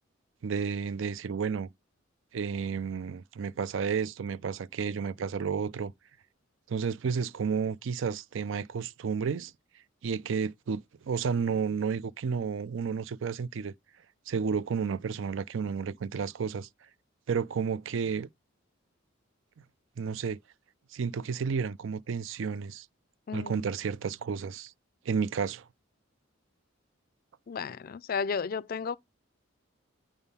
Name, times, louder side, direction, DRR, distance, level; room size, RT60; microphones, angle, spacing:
voice 1, 0.4-1.7 2.3-5.9 6.7-9.5 10.0-13.7 14.3-16.7 17.3-18.3 20.0-20.4 20.9-22.9 23.3-24.7 25.1-25.7, right 6 dB, 65° right, 0.4 m, -31 dB
voice 2, 23.3-23.6 27.5-29.0, left 6 dB, 45° left, 0.4 m, -33 dB
8.9 x 3.6 x 5.5 m
head